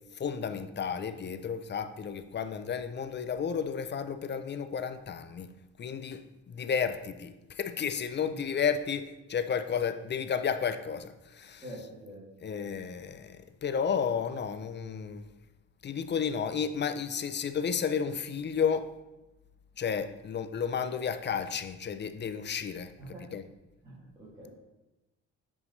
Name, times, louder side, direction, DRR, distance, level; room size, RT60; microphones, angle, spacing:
voice 1, 0.1-5.5 5.8-6.2 6.5-11.6 12.4-15.3 15.8-18.9 19.8-22.9 23.3-23.4, left 7 dB, 35° left, 0.5 m, -32 dB
voice 2, 11.6-12.5 23.0-23.3 23.8-24.5, right 1 dB, 15° right, 2.4 m, -46 dB
7.8 x 5.4 x 3.2 m
cardioid pair, 90°, 30 cm